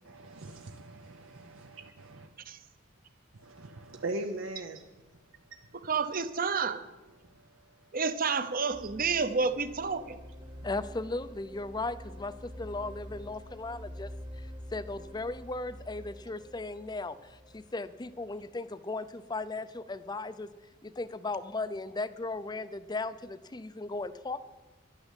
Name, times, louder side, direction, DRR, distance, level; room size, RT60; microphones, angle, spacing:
voice 1, 0.0-2.3 3.4-4.8, right 2 dB, 80° right, 4 dB, 0.8 m, -40 dB
voice 2, 5.8-6.8 7.9-10.2, right 5 dB, 45° right, 11 dB, 0.8 m, -29 dB
sound 1, 8.7-18.5, equal, 25° right, 1.0 m, -47 dB
voice 3, 10.6-14.1 14.4-20.5 20.8-24.5, left 3 dB, 20° left, 14 dB, 0.5 m, -37 dB
12.0 x 9.6 x 8.1 m, 1.2 s
head